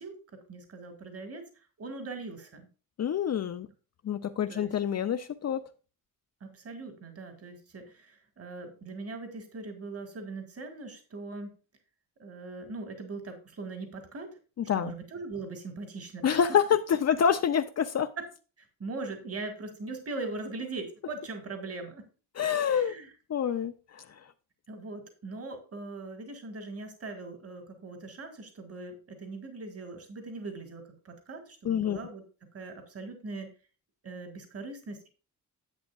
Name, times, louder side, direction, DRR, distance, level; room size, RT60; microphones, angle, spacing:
voice 1, 0.0-1.5 1.8-2.7 4.5-4.7 6.4-11.5 12.2-14.4 14.7-16.5 18.2-18.3 18.6-22.1 22.7-23.1 24.7-32.2 32.5-33.5 34.0-35.1, right 3 dB, 40° right, 8 dB, 2.1 m, -40 dB
voice 2, 3.0-3.7 4.0-5.6 14.6-14.9 16.2-18.1 22.4-22.9 23.3-24.1 31.6-32.0, left 8 dB, 45° left, 8 dB, 0.6 m, -27 dB
10.5 x 8.0 x 2.4 m, 0.34 s
wide cardioid pair, 145°, 35 cm